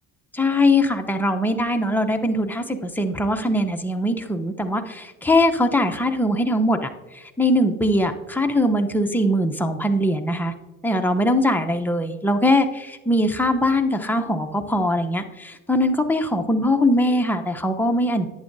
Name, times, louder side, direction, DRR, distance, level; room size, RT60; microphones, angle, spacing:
voice 1, 0.3-6.9 7.1-10.5 10.8-18.3, left 1 dB, 5° left, 4 dB, 0.7 m, -21 dB
11.0 x 8.6 x 2.6 m, 1.2 s
cardioid pair, 95°, 37 cm